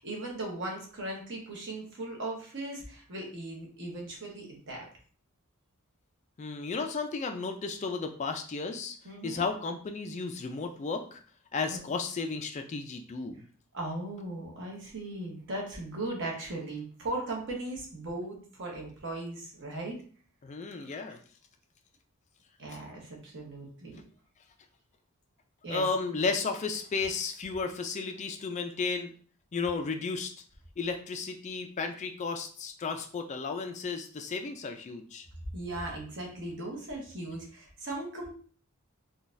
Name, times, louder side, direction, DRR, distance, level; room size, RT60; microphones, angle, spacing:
voice 1, 0.0-4.9 9.0-9.4 11.7-11.8 13.7-20.0 20.8-21.0 22.6-24.0 25.6-25.8 35.5-38.3, right 2 dB, 55° right, -1 dB, 1.0 m, -38 dB
voice 2, 6.4-9.0 9.2-11.2 11.5-13.4 20.4-21.2 25.7-29.1 29.5-30.3 30.8-35.3, left 4 dB, 30° left, 5 dB, 0.3 m, -33 dB
3.9 x 2.3 x 2.5 m, 0.43 s
head